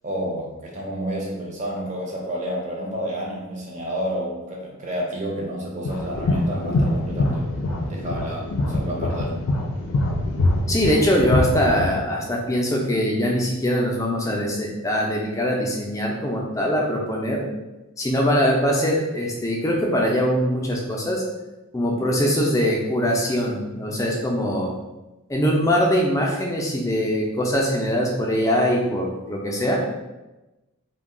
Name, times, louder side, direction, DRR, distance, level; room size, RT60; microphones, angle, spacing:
voice 1, 0.0-7.5 7.8-9.3, equal, 35° right, -2 dB, 0.5 m, -30 dB
sound 1, 5.8-12.0, left 2 dB, 80° left, 0.5 m, -23 dB
voice 2, 10.7-17.5 18.0-21.2 21.7-24.7 25.3-29.8, equal, 15° left, -1 dB, 0.4 m, -22 dB
2.3 x 2.2 x 3.6 m, 1.0 s
head